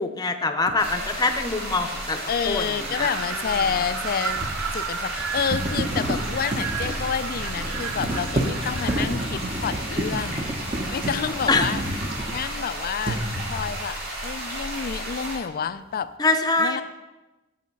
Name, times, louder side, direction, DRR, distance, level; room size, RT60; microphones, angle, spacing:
voice 1, 0.0-3.1 10.8-10.9 11.5-11.7 16.2-16.8, left 3 dB, 20° left, 6 dB, 0.7 m, -24 dB
sound 1, 0.7-0.8 3.9-12.6 13.0-13.8, right 1 dB, 30° right, 0.9 m, -30 dB
sound 2, 0.8-15.4, right 1 dB, 50° right, 2.8 m, -33 dB
voice 2, 2.3-4.4 4.7-10.5 10.9-11.8 12.2-13.2 13.5-16.1 16.6-16.8, left 7 dB, 45° left, 13 dB, 0.4 m, -29 dB
Wind, 2.7-9.2, right 8 dB, 80° right, 0.5 m, -34 dB
8.6 x 7.2 x 5.3 m, 1.1 s
head